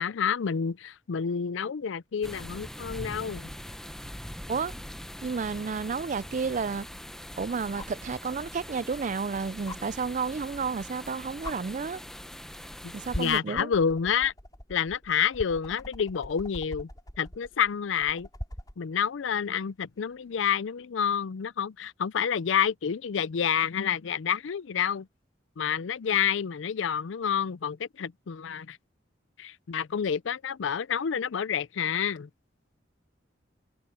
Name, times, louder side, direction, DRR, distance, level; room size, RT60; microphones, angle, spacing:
voice 1, 0.0-3.5 12.8-14.3 14.7-16.9 17.2-18.3 18.8-25.1 25.6-28.8 29.4-32.3, left 7 dB, 85° left, 0.5 m, -29 dB
sound 1, 2.2-13.4, equal, 5° left, 0.7 m, -42 dB
voice 2, 5.2-6.9 7.4-12.0 12.9-13.7, right 5 dB, 40° right, 0.4 m, -31 dB
sound 2, 7.7-8.1 9.7-9.8 10.9-11.0 11.4-11.6 12.5-12.8 13.1-18.8 20.4-20.5, left 1 dB, 20° left, 5.2 m, -41 dB
head